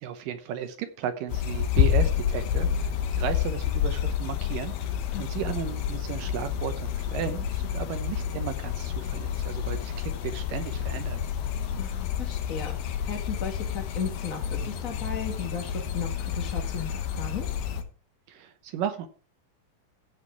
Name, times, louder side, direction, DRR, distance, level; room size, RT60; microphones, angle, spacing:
voice 1, 0.0-11.2 18.3-19.1, right 9 dB, 75° right, 9 dB, 2.5 m, -35 dB
sound 1, 1.3-17.8, left 9 dB, 75° left, 2.9 m, -29 dB
voice 2, 11.8-17.5, left 6 dB, 45° left, 3 dB, 1.1 m, -36 dB
15.0 x 5.8 x 4.6 m, 0.38 s
omnidirectional pair, 4.1 m